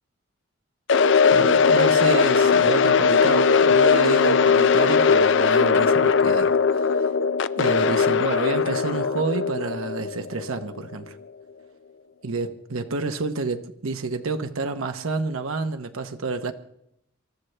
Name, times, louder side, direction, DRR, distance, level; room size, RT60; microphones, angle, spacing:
sound 1, 0.9-10.9, left 5 dB, 60° left, 0.5 m, -19 dB
voice 1, 1.3-7.1 7.5-11.2 12.2-16.5, right 3 dB, 90° right, 0.9 m, -29 dB
28.0 x 13.5 x 3.3 m
head